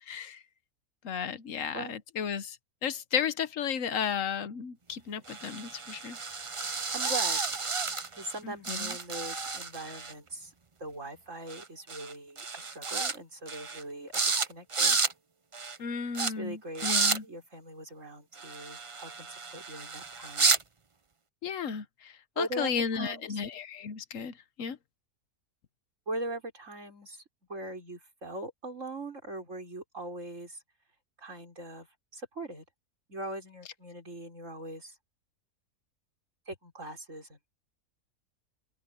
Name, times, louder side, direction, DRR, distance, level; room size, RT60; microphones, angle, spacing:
voice 1, 0.1-0.4 1.0-2.6 2.8-6.2 8.4-8.9 15.8-17.2 21.4-21.8 22.4-24.3 24.6-24.8, left 7 dB, 60° left, 1.3 m, -33 dB
sound 1, 5.3-8.4 8.6-10.1 11.5-11.6 11.9-12.1 12.4-13.1 13.5-13.8 14.1-14.5 14.7-15.1 15.5-15.8 16.1-16.3 16.7-17.2 18.4-20.6, right 4 dB, 30° right, 0.7 m, -31 dB
voice 2, 6.9-7.4 8.2-10.5 10.8-15.0 16.2-20.6 22.4-23.4 26.1-27.2 27.5-30.6 31.2-31.9 32.1-32.6 33.1-34.9 36.5-37.4, right 2 dB, 55° right, 5.9 m, -41 dB
open air
omnidirectional pair, 1.6 m